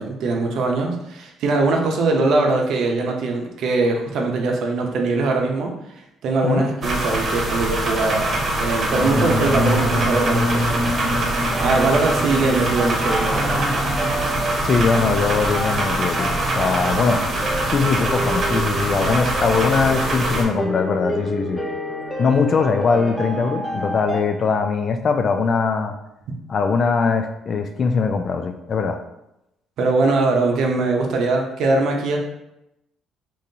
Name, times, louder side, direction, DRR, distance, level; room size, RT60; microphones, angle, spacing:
voice 1, 0.0-5.7 6.2-10.8 11.6-13.7 29.8-32.2, right 3 dB, 70° right, 1 dB, 0.7 m, -21 dB
sound 1, 6.8-20.4, right 1 dB, 45° right, 0.9 m, -24 dB
sound 2, 8.9-14.3, equal, 10° right, 1.1 m, -25 dB
sound 3, 10.7-24.2, right 1 dB, 10° left, 0.7 m, -30 dB
voice 2, 14.6-17.2 17.7-21.6 22.2-25.9 26.5-29.0, left 5 dB, 45° left, 7 dB, 0.4 m, -21 dB
3.7 x 3.0 x 2.8 m, 0.87 s
cardioid pair, 105°, 0 cm